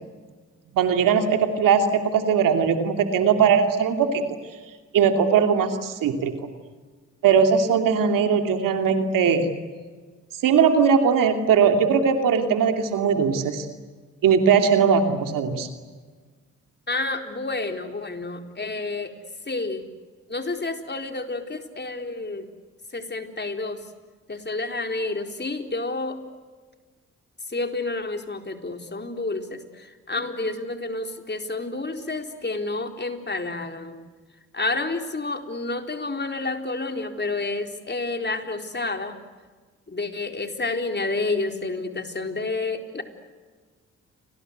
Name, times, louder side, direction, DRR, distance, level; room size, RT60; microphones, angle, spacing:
voice 1, 0.7-4.2 4.9-6.4 7.2-9.5 10.4-13.7 14.2-15.7, right 6 dB, 80° right, 6 dB, 2.9 m, -20 dB
voice 2, 16.9-19.1 19.5-19.8 20.3-22.5 22.9-23.8 24.3-26.2 27.5-34.0 34.5-39.1 39.9-43.0, left 3 dB, 30° left, 5 dB, 4.1 m, -29 dB
30.0 x 24.5 x 8.1 m, 1.4 s
supercardioid pair, 45°, 32 cm